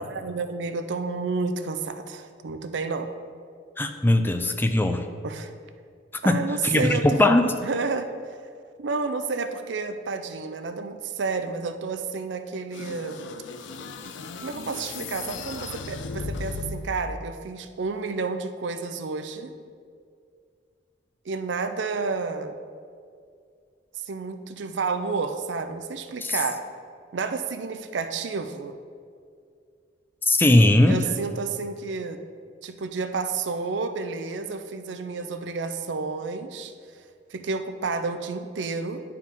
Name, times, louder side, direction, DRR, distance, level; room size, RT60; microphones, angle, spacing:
voice 1, 0.1-3.1 5.2-5.5 6.2-7.0 7.6-8.1 8.8-13.2 14.4-19.5 21.3-22.6 24.0-26.6 27.1-28.8 30.9-32.2 32.6-36.7 37.3-39.0, right 4 dB, 75° right, 8 dB, 0.5 m, -30 dB
voice 2, 3.8-5.1 6.3-6.4 6.6-7.5 26.2-26.4 30.3-31.1, left 1 dB, 10° left, 7 dB, 0.3 m, -19 dB
sound 1, 12.7-17.1, left 4 dB, 85° left, 0.5 m, -36 dB
10.5 x 4.7 x 3.5 m, 2.2 s
head